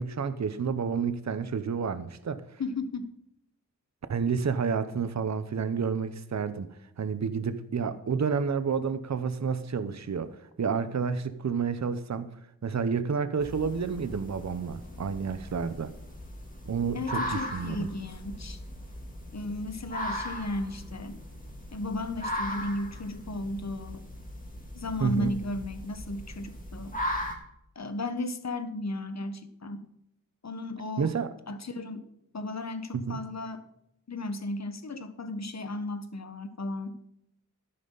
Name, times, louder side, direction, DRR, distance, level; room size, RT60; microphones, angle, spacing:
voice 1, 0.0-2.4 4.1-6.7 7.0-12.3 12.6-15.9 16.7-17.9 25.0-25.3 31.0-31.3 32.9-33.2, right 6 dB, 55° right, 12 dB, 0.9 m, -30 dB
voice 2, 2.6-3.1 16.9-18.6 19.3-21.2 21.7-24.0 24.7-26.9 27.7-29.9 30.4-31.1 31.5-32.1 32.3-33.6 34.1-37.0, left 2 dB, 50° left, 9 dB, 1.3 m, -35 dB
sound 1, 13.4-27.3, left 1 dB, 25° left, 3.4 m, -38 dB
13.0 x 11.0 x 4.0 m, 0.80 s
wide cardioid pair, 100°, 34 cm